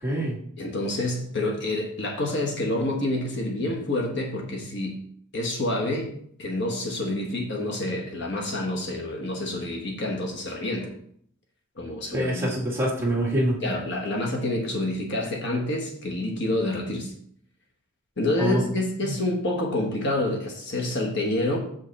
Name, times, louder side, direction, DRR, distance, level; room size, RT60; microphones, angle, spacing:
voice 1, 0.0-0.4 12.1-13.6 18.4-18.6 19.0-19.1, right 1 dB, 10° right, -4 dB, 2.0 m, -25 dB
voice 2, 0.6-5.0 5.3-6.1 6.4-10.9 11.8-12.5 13.6-17.1 18.2-21.6, left 1 dB, 55° left, 1 dB, 1.3 m, -28 dB
7.3 x 5.3 x 4.1 m, 0.65 s
head